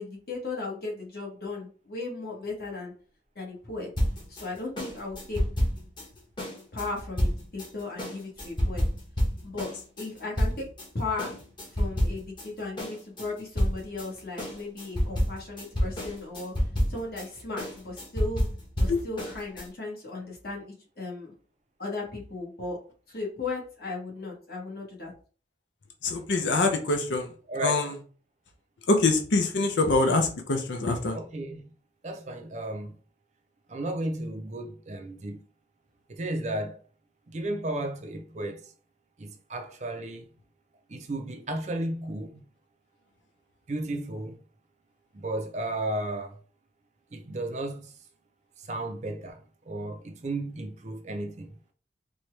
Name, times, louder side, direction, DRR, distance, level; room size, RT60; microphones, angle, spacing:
voice 1, 0.0-2.9 3.3-3.9 4.3-5.4 6.7-8.8 9.4-9.7 10.0-10.7 10.9-11.3 11.7-16.5 16.9-18.5 18.8-21.3 21.8-22.8 23.1-25.1, left 3 dB, 55° left, 1.5 m, -36 dB
sound 1, 4.0-10.9 11.2-12.5 12.8-19.7, equal, 25° left, 1.1 m, -29 dB
voice 2, 26.0-27.3 27.6-27.9 28.9-31.2, left 3 dB, 75° left, 0.6 m, -24 dB
voice 3, 27.5-27.9 31.1-31.7 32.0-32.9 33.7-35.4 36.1-36.8 37.3-38.6 39.2-40.2 40.9-42.5 43.7-44.4 45.1-46.4 47.1-47.9 48.7-49.4 49.7-51.6, right 1 dB, 40° right, 0.5 m, -33 dB
4.3 x 2.3 x 3.2 m
head